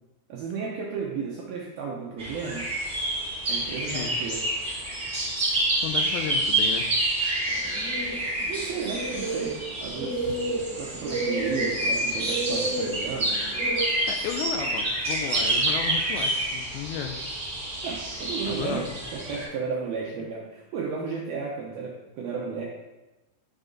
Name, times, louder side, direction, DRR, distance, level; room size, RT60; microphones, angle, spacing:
voice 1, 0.3-2.7 3.5-4.4 8.4-9.6 9.8-10.4 10.8-13.4 17.8-18.9 19.1-22.6, right 5 dB, 80° right, -3 dB, 2.1 m, -33 dB
sound 1, 2.2-19.4, right 1 dB, 20° right, 1.8 m, -28 dB
voice 2, 3.8-4.2 5.2-6.9 10.2-10.4 13.9-17.4 18.5-18.9, left 8 dB, 85° left, 3 dB, 2.6 m, -34 dB
sound 2, 7.5-13.8, right 2 dB, 45° right, 2.4 m, -32 dB
9.9 x 5.3 x 3.8 m, 1.1 s
omnidirectional pair, 5.3 m